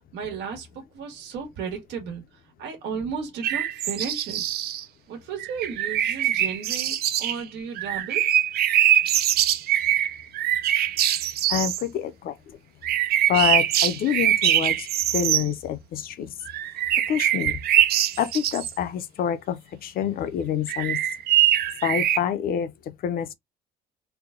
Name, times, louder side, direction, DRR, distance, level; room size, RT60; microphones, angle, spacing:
voice 1, 0.1-2.2 2.6-4.4 5.1-8.3, right 6 dB, 85° right, 1.4 m, -34 dB
sound 1, 3.4-4.8 5.4-7.4 7.8-11.8 12.8-15.5 16.5-18.7 20.7-22.2, right 11 dB, 65° right, 0.6 m, -23 dB
voice 2, 11.5-12.6 13.3-16.3 17.1-17.6 18.2-21.0 21.8-23.3, left 9 dB, 60° left, 0.7 m, -27 dB
3.5 x 2.2 x 3.6 m
cardioid pair, 110°, 17 cm